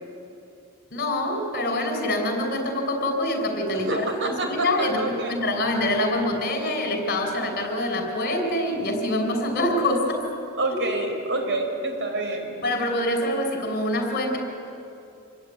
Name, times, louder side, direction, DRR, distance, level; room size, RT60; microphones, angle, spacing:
voice 1, 0.9-4.1 4.4-10.2 12.6-14.4, left 1 dB, 45° left, 3 dB, 5.4 m, -25 dB
voice 2, 3.7-5.4 10.6-12.6, right 2 dB, 60° right, 4 dB, 4.7 m, -28 dB
27.0 x 21.5 x 9.4 m, 2.7 s
head